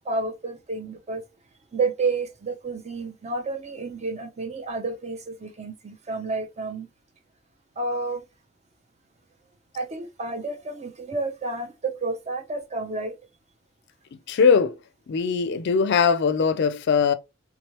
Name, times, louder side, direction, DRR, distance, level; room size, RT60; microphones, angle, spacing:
voice 1, 0.0-1.2 1.7-6.9 7.8-8.2 9.7-13.1, right 3 dB, 35° right, 0.6 m, -30 dB
voice 2, 14.3-14.8 15.1-17.1, left 6 dB, 60° left, 0.4 m, -20 dB
3.6 x 2.9 x 3.1 m
head